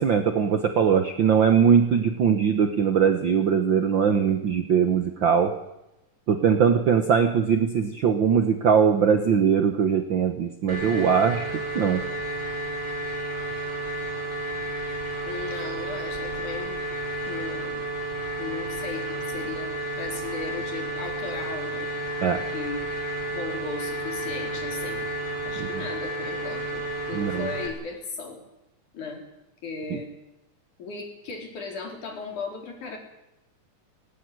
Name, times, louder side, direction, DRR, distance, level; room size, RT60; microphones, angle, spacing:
voice 1, 0.0-5.5 6.3-12.0 22.2-22.4 25.6-25.7 27.1-27.5 29.9-30.0, right 7 dB, 60° right, 7 dB, 1.3 m, -21 dB
sound 1, 10.7-27.7, right 1 dB, 35° right, 4.8 m, -31 dB
voice 2, 15.3-16.9 17.3-17.8 18.4-21.9 22.5-22.9 23.3-25.1 25.4-28.4 28.9-29.2 29.6-30.1 30.8-33.0, left 4 dB, 70° left, 2 dB, 5.4 m, -36 dB
18.5 x 18.0 x 9.6 m, 0.93 s
omnidirectional pair, 3.6 m